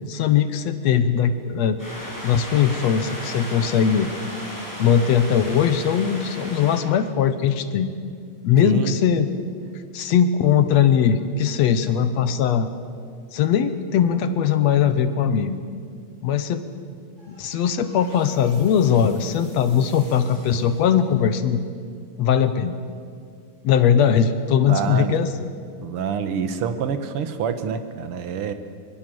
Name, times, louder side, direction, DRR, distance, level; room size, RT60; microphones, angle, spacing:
voice 1, 0.0-1.8 2.2-4.1 4.8-7.9 8.4-9.3 9.9-12.7 13.3-15.6 16.2-16.6 17.3-21.6 22.2-22.7 23.6-25.5, left 8 dB, 65° left, 10 dB, 1.8 m, -20 dB
sound 1, 1.8-6.8, equal, 5° left, 7.4 m, -35 dB
voice 2, 8.6-9.0 24.7-25.2 25.8-28.5, right 7 dB, 60° right, 9 dB, 1.6 m, -26 dB
sound 2, 17.2-21.5, equal, 20° right, 7.9 m, -50 dB
23.5 x 22.5 x 7.7 m, 2.2 s
omnidirectional pair, 3.9 m